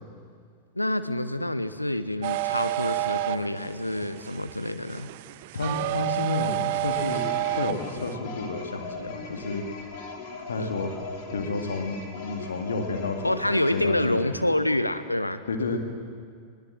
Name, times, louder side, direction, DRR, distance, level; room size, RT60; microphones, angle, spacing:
voice 1, 0.7-5.1 10.6-10.7 13.2-15.4, left 1 dB, 85° left, 12 dB, 0.9 m, -27 dB
sound 1, 2.2-8.2, right 15 dB, 50° right, 0.5 m, -30 dB
voice 2, 5.5-9.6 10.5-10.9 11.3-14.3 15.5-15.8, left 3 dB, 70° left, 5 dB, 2.3 m, -31 dB
sound 2, 6.8-13.8, left 5 dB, 50° left, 3.2 m, -39 dB
21.0 x 19.5 x 7.6 m, 2.2 s
figure-of-eight pair, 90°, 0 cm